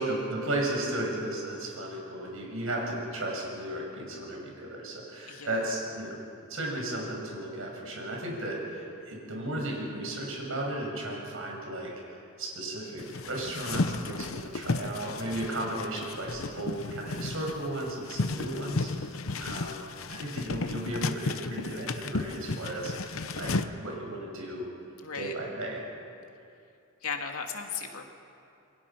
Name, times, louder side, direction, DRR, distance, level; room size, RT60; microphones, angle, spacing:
voice 1, 0.0-6.2 6.5-19.1 19.4-19.8 20.1-24.7 25.1-25.8, right 1 dB, 70° right, -1 dB, 6.4 m, -35 dB
voice 2, 5.3-5.6 19.1-19.5 25.0-25.3 27.0-28.0, left 5 dB, 85° left, 3 dB, 2.5 m, -37 dB
sound 1, 13.0-23.7, left 3 dB, 70° left, 0.9 m, -33 dB
28.0 x 22.5 x 5.9 m, 2.6 s
head